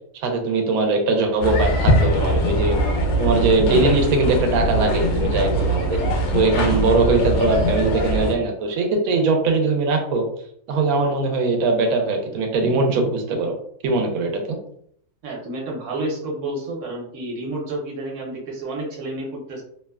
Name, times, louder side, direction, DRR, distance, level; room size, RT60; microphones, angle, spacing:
voice 1, 0.1-2.8 3.2-6.0 6.3-10.3 10.7-13.5 13.8-14.6, right 3 dB, 90° right, 3 dB, 1.1 m, -21 dB
sound 1, 1.4-8.3, equal, 85° left, 1.1 m, -21 dB
voice 2, 15.2-19.6, right 2 dB, 65° right, -1 dB, 1.1 m, -30 dB
2.8 x 2.1 x 2.2 m, 0.67 s
omnidirectional pair, 1.5 m